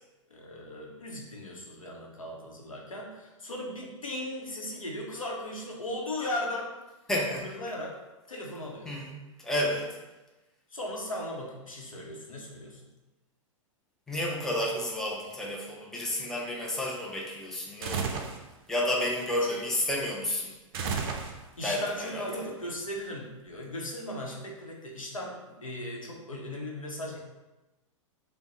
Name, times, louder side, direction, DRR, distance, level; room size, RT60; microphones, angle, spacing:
voice 1, 0.3-6.8 7.4-8.0 8.3-8.9 10.7-12.8 19.4-19.6 21.6-27.2, left 1 dB, 80° left, -1 dB, 0.8 m, -37 dB
voice 2, 7.1-7.5 8.8-9.1 9.4-9.9 14.1-18.2 18.7-20.5 21.6-22.2, left 1 dB, 5° left, -3 dB, 0.6 m, -31 dB
sound 1, 17.8-18.4 20.7-21.7, right 5 dB, 45° right, 0.5 m, -32 dB
5.0 x 2.2 x 3.0 m, 1.1 s
figure-of-eight pair, 100°, 17 cm